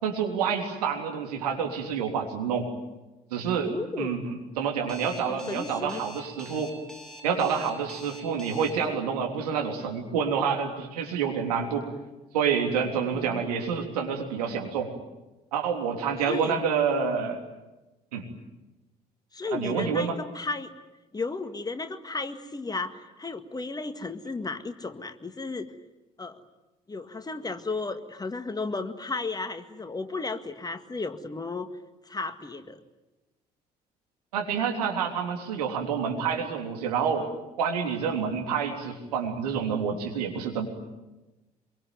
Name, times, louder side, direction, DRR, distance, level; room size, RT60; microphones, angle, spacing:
voice 1, 0.0-2.7 3.3-3.7 4.0-6.7 7.2-11.9 12.3-14.9 15.5-17.4 18.1-18.3 19.5-20.2 34.3-37.3 37.6-40.7, right 6 dB, 75° right, 3 dB, 3.5 m, -28 dB
voice 2, 3.7-4.2 5.2-6.0 13.1-13.5 16.3-16.6 19.3-20.7 21.1-25.7 26.2-26.4 26.9-31.7 32.1-32.8, left 3 dB, 20° left, 9 dB, 1.9 m, -34 dB
Alarm, 4.9-8.7, equal, 5° left, 6.4 m, -45 dB
26.0 x 23.5 x 9.4 m, 1.0 s
figure-of-eight pair, 50°, 20 cm